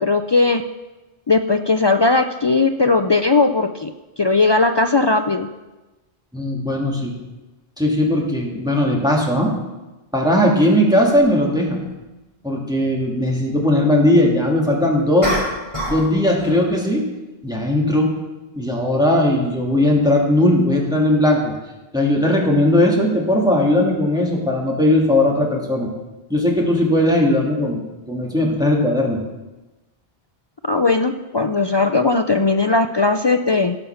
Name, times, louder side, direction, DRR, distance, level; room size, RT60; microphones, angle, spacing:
voice 1, 0.0-0.6 1.3-3.9 4.2-5.5 30.6-33.8, left 3 dB, 45° left, 7 dB, 0.3 m, -18 dB
voice 2, 6.3-7.1 7.8-9.5 10.1-11.9 12.4-15.4 15.9-17.1 17.4-18.1 18.5-21.5 21.9-25.9 26.3-29.2, left 1 dB, 5° right, -2 dB, 2.0 m, -18 dB
sound 1, 11.2-11.3 15.2-16.1 16.4-16.7, equal, 30° right, 3.5 m, -24 dB
17.0 x 5.6 x 5.7 m, 1.1 s
omnidirectional pair, 1.0 m